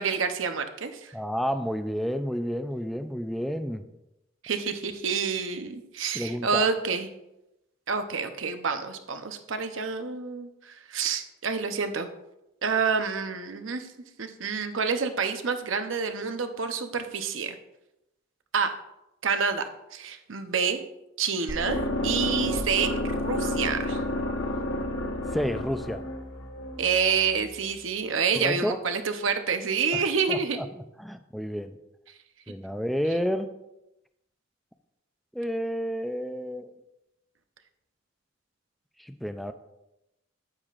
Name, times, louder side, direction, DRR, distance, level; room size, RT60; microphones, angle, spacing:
voice 1, 0.0-1.1 4.4-7.1 7.9-12.1 12.6-13.9 14.2-17.6 18.5-18.8 19.2-20.8 21.2-22.9 23.2-24.0 26.8-30.6, right 5 dB, 85° right, 8 dB, 0.8 m, -28 dB
voice 2, 1.1-3.8 6.1-6.7 25.3-26.0 28.3-28.8 29.9-30.0 30.3-30.7 31.0-31.8 32.5-33.5 35.3-36.7 39.0-39.5, equal, ahead, 9 dB, 0.4 m, -30 dB
sound 1, 21.5-27.5, left 1 dB, 90° left, 1.2 m, -30 dB
9.5 x 9.1 x 2.5 m, 0.91 s
head